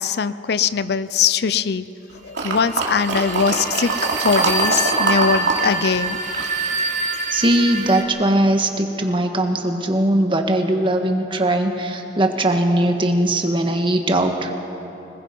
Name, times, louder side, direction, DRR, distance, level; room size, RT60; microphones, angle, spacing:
voice 1, 0.0-1.9 2.2-6.2, left 6 dB, 60° left, 15 dB, 0.5 m, -21 dB
sound 1, 2.3-5.6 5.9-7.3 7.8-7.9, right 3 dB, 80° right, 3.0 m, -23 dB
sound 2, 2.7-8.0, right 3 dB, 45° right, 2.0 m, -26 dB
voice 2, 7.3-14.5, right 1 dB, 30° right, 4 dB, 1.6 m, -20 dB
25.5 x 20.0 x 5.4 m, 3.0 s
head